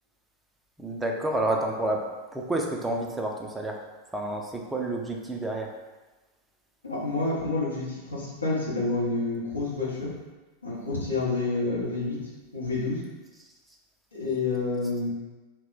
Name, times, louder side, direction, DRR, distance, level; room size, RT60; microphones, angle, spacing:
voice 1, 0.8-3.8 4.1-5.7, right 1 dB, 10° right, 0 dB, 0.4 m, -29 dB
voice 2, 6.8-10.1 10.6-12.2 12.5-13.0 14.1-15.1, left 3 dB, 80° left, -6 dB, 0.7 m, -28 dB
2.1 x 2.1 x 3.7 m, 1.2 s
figure-of-eight pair, 90°, 0 cm